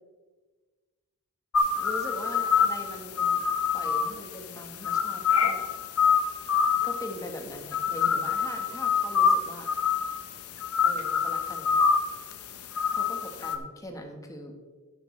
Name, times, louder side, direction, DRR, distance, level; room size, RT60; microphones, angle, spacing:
sound 1, 1.5-13.6, left 6 dB, 75° left, 0.9 m, -26 dB
voice 1, 1.7-5.7 6.8-9.7 10.8-11.8 12.9-14.5, left 1 dB, 15° left, 3 dB, 1.4 m, -41 dB
11.0 x 10.0 x 3.3 m, 1.3 s
head